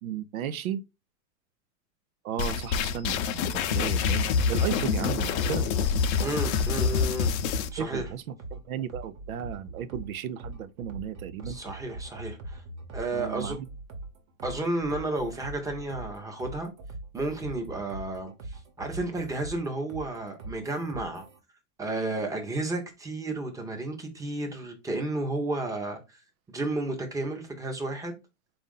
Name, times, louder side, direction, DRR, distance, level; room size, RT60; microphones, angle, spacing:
voice 1, 0.0-0.8 2.2-5.7 7.8-11.6 13.1-13.7, right 9 dB, 90° right, 0.6 m, -35 dB
sound 1, 2.4-7.7, left 6 dB, 55° left, 0.6 m, -26 dB
sound 2, 5.4-21.4, right 2 dB, 45° right, 1.2 m, -42 dB
voice 2, 6.2-7.3 7.7-8.1 11.4-12.6 12.9-13.6 14.4-16.7 17.1-21.3 21.8-26.2 26.5-28.2, right 2 dB, 10° right, 0.8 m, -32 dB
4.1 x 2.6 x 3.7 m
hypercardioid pair, 130°, 41 cm